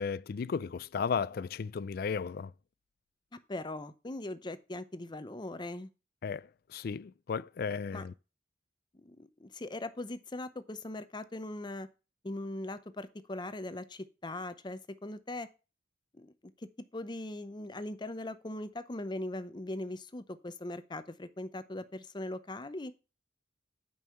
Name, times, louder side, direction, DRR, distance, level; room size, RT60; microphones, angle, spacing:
voice 1, 0.0-2.5 6.2-8.1, left 6 dB, 55° left, 0.4 m, -35 dB
voice 2, 3.5-5.9 7.9-8.1 9.0-11.9 12.2-15.5 16.2-16.3 16.9-22.9, left 1 dB, 25° left, 0.7 m, -40 dB
9.3 x 5.5 x 5.7 m
head